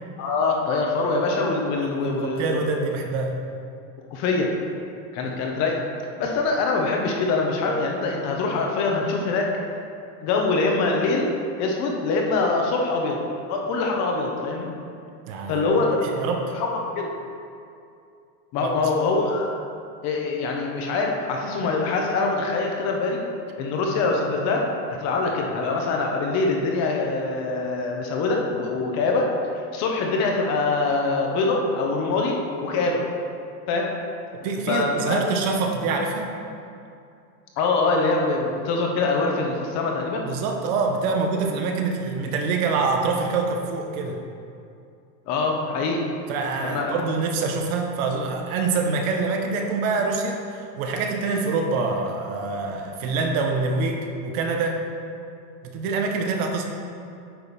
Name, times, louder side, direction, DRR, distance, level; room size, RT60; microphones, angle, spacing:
voice 1, 0.2-2.6 4.1-4.5 5.1-5.8 6.2-9.5 10.2-11.3 11.6-13.2 13.5-14.7 15.5-16.1 16.5-16.7 16.9-17.1 18.5-19.6 20.0-23.2 23.6-24.7 25.0-33.0 33.7-33.9 34.7-35.2 37.6-40.2 45.3-46.0 46.6-46.9, left 3 dB, 35° left, 0 dB, 0.9 m, -24 dB
voice 2, 2.0-3.4 5.2-5.3 15.3-15.7 16.0-16.5 18.6-18.7 34.4-36.3 40.2-44.2 46.3-54.8 55.7-56.6, right 4 dB, 55° right, 3 dB, 1.1 m, -25 dB
9.1 x 5.2 x 4.2 m, 2.5 s
supercardioid pair, 160°, 50 cm